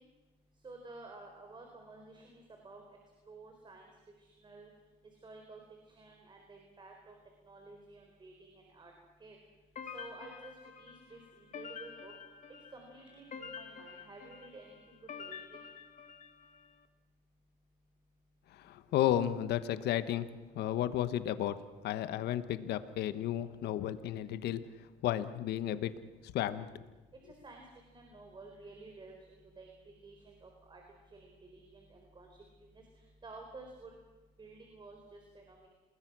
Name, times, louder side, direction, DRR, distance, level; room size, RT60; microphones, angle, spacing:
voice 1, 0.6-2.8 3.3-3.9 4.2-4.7 5.2-5.6 5.9-7.1 7.4-8.9 9.2-9.4 9.9-10.5 10.8-12.1 12.7-15.6 27.2-27.6 27.9-30.8 31.1-32.7 33.2-33.9 34.4-35.7, right 3 dB, 30° right, 2 dB, 4.4 m, -52 dB
sound 1, 9.8-16.7, left 6 dB, 50° left, 2.2 m, -48 dB
voice 2, 18.6-20.3 20.5-21.6 21.8-24.6 25.0-25.9 26.3-26.7, left 12 dB, 75° left, 12 dB, 1.3 m, -32 dB
28.0 x 20.5 x 6.2 m, 1.2 s
cardioid pair, 110°, 17 cm